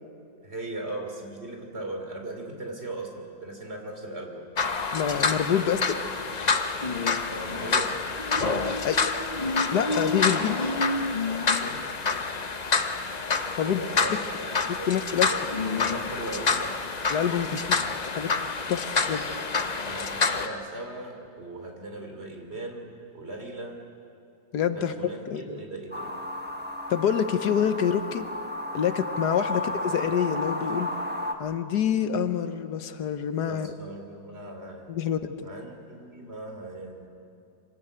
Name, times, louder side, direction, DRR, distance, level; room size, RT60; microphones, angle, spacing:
voice 1, 0.4-4.5 7.2-8.0 11.6-12.0 13.7-14.9 15.2-16.8 19.8-23.8 24.7-26.4 29.5-29.8 33.4-34.9 35.4-37.1, right 2 dB, 40° right, 3 dB, 3.3 m, -38 dB
sound 1, 4.6-20.5, left 4 dB, 35° left, 0.7 m, -27 dB
voice 2, 4.9-6.0 8.8-9.0 9.7-10.6 13.6-13.9 14.9-15.3 17.1-17.8 18.1-18.3 18.7-19.2 24.5-24.9 25.3-25.5 26.9-28.3 28.7-30.9 31.4-33.7 34.9-35.5, left 8 dB, 80° left, 10 dB, 1.5 m, -26 dB
sound 2, 25.9-31.3, left 1 dB, 5° right, 1.3 m, -33 dB
25.0 x 19.0 x 8.1 m, 2.6 s
omnidirectional pair, 1.7 m